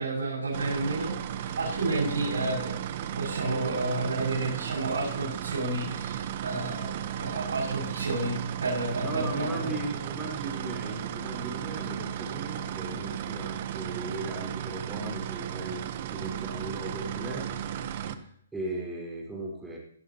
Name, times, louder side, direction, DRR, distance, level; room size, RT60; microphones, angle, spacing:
voice 1, 0.0-2.7 3.2-8.3 8.6-9.7, right 2 dB, 90° right, -6 dB, 6.9 m, -31 dB
sound 1, 0.5-18.2, right 10 dB, 40° right, 1.1 m, -35 dB
voice 2, 9.0-18.3 18.5-19.8, right 1 dB, 5° right, -3 dB, 5.4 m, -37 dB
19.5 x 13.5 x 3.1 m, 0.66 s
hypercardioid pair, 150°, 0 cm